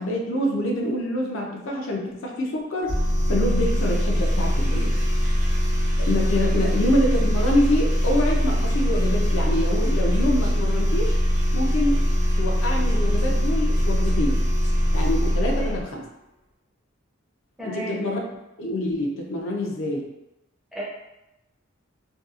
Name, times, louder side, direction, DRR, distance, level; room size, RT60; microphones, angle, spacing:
voice 1, 0.0-3.0 3.3-4.9 6.0-11.2 11.5-12.1 12.4-14.5 14.9-16.0 17.6-18.2 18.6-20.1, left 1 dB, 75° left, 0 dB, 0.4 m, -26 dB
sound 1, 2.9-15.8, equal, 65° right, 0.9 m, -22 dB
voice 2, 15.4-15.8 17.6-18.0 20.7-20.8, right 1 dB, ahead, -7 dB, 0.5 m, -34 dB
2.7 x 2.3 x 2.3 m, 0.93 s
head